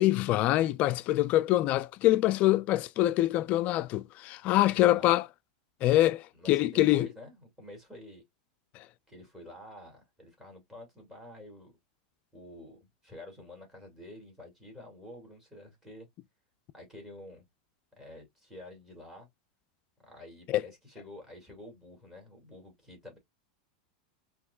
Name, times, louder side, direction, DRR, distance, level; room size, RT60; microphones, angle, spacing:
voice 1, 0.0-5.2 5.8-7.1 20.5-20.7, left 15 dB, 40° left, 0.4 m, -25 dB
voice 2, 6.4-8.2 9.1-11.7 12.3-16.1 16.7-17.4 18.0-19.3 20.0-23.2, left 1 dB, 10° right, 2.4 m, -49 dB
5.7 x 2.9 x 2.3 m
supercardioid pair, 140°, 4 cm